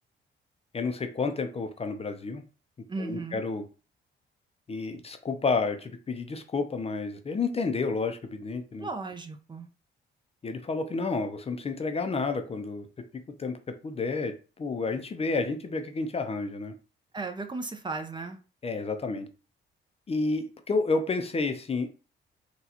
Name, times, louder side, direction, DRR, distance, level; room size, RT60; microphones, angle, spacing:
voice 1, 0.7-2.4 3.0-3.6 4.7-8.9 10.4-12.9 13.4-13.6 13.8-16.7 18.6-19.3 20.1-21.9, left 4 dB, 30° left, 0.5 m, -30 dB
voice 2, 2.9-3.4 8.8-9.7 17.1-18.4, right 3 dB, 25° right, 0.6 m, -35 dB
4.0 x 2.3 x 2.8 m
cardioid pair, 90°, 20 cm